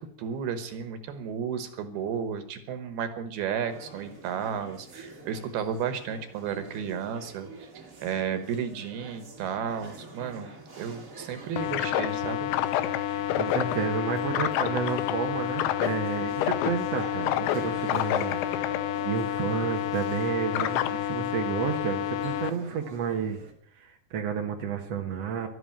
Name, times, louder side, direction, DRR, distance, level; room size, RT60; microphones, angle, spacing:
voice 1, 0.2-7.5 8.0-12.5, right 7 dB, 70° right, 10 dB, 2.9 m, -33 dB
sound 1, 3.7-23.5, right 3 dB, 35° right, 1.3 m, -47 dB
sound 2, 11.6-22.5, left 12 dB, 80° left, 2.6 m, -28 dB
voice 2, 13.1-23.4 23.7-25.5, right 6 dB, 90° right, 4 dB, 1.4 m, -31 dB
12.5 x 11.0 x 8.7 m, 0.65 s
omnidirectional pair, 5.1 m